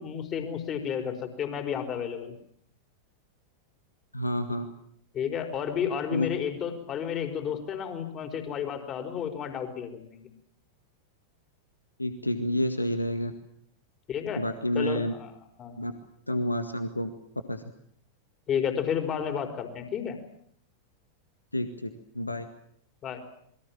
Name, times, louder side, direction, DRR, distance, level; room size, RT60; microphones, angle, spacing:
voice 1, 0.0-2.4 5.1-10.3 14.1-14.4 14.7-15.3 15.6-15.8 18.5-20.2 23.0-23.2, left 8 dB, 30° left, 6 dB, 4.9 m, -32 dB
voice 2, 4.1-4.7 6.1-6.3 12.0-13.3 14.4-15.1 15.8-15.9 16.3-17.1 17.5-17.6 21.5-21.9 22.2-22.4, left 1 dB, 85° left, 9 dB, 1.8 m, -29 dB
28.0 x 22.5 x 7.5 m, 0.65 s
figure-of-eight pair, 90°, 0 cm